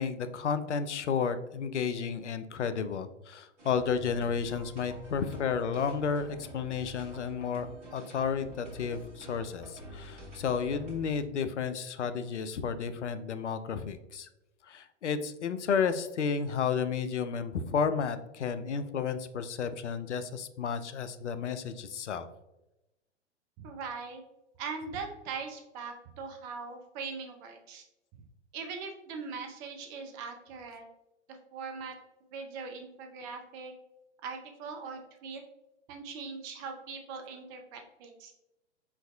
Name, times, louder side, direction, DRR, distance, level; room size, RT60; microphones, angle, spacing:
voice 1, 0.0-14.3 14.6-22.3, left 6 dB, 80° left, 11 dB, 0.5 m, -32 dB
sound 1, 3.6-11.2, equal, 85° right, 1.3 m, -47 dB
voice 2, 23.6-24.2 24.6-27.9 28.5-30.8 31.5-31.9 32.3-33.7 34.2-35.4 35.9-38.3, right 5 dB, 20° right, 4 dB, 0.3 m, -41 dB
4.6 x 4.5 x 2.3 m, 0.94 s
figure-of-eight pair, 105°, 35 cm